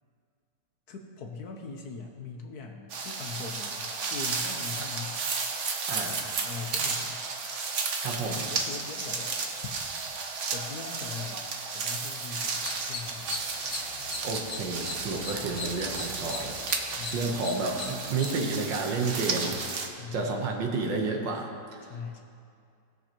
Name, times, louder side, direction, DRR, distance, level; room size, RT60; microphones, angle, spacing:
voice 1, 0.9-5.2 6.1-7.2 8.3-9.4 10.5-11.5 11.7-13.4 16.9-17.3 20.0-20.4 21.8-22.2, left 5 dB, 65° left, 2 dB, 1.2 m, -41 dB
sound 1, 2.9-19.9, right 4 dB, 55° right, 0.9 m, -33 dB
voice 2, 8.0-8.4 14.2-16.6 17.1-19.6 20.1-21.8, right 3 dB, 80° right, 2 dB, 1.7 m, -31 dB
sound 2, 12.5-18.3, left 4 dB, 85° left, 1.8 m, -40 dB
18.5 x 6.5 x 3.0 m, 2.4 s
omnidirectional pair, 2.0 m